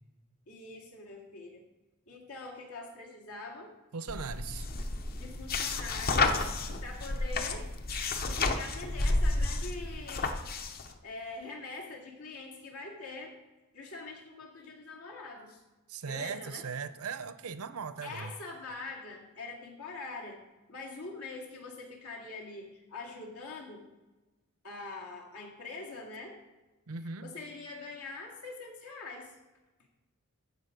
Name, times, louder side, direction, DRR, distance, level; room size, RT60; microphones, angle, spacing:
voice 1, 0.5-1.6 2.1-3.7 5.2-6.4 6.8-7.7 8.2-10.5 11.0-13.4 13.7-15.6 16.0-16.7 18.0-20.4 20.7-23.9 24.6-26.3 27.2-29.3, left 3 dB, 80° left, -1 dB, 2.2 m, -44 dB
voice 2, 3.9-4.7 15.9-18.3 26.9-27.3, right 5 dB, 75° right, 13 dB, 0.6 m, -38 dB
sound 1, 4.1-10.9, left 3 dB, 45° left, 0.7 m, -31 dB
14.5 x 5.0 x 5.1 m, 1.1 s
head